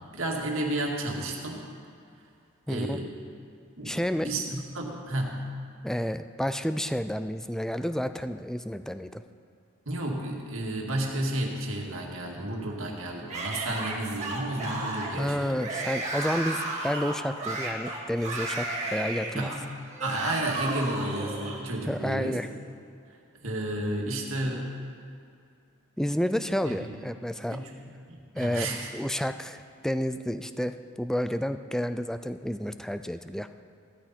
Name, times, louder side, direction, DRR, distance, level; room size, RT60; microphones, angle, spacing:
voice 1, 0.1-1.7 2.7-3.1 3.8-5.4 9.9-15.6 19.3-19.6 20.0-22.4 23.4-24.7 26.6-26.8 27.5-28.9, right 1 dB, 65° right, -1 dB, 2.1 m, -32 dB
voice 2, 2.7-3.0 3.8-4.3 5.8-9.2 15.2-19.5 21.9-22.5 26.0-27.6 28.4-33.5, equal, ahead, 10 dB, 0.4 m, -30 dB
Yell / Screaming, 13.3-21.6, right 2 dB, 35° right, 2.1 m, -33 dB
16.0 x 13.5 x 4.4 m, 2.4 s
head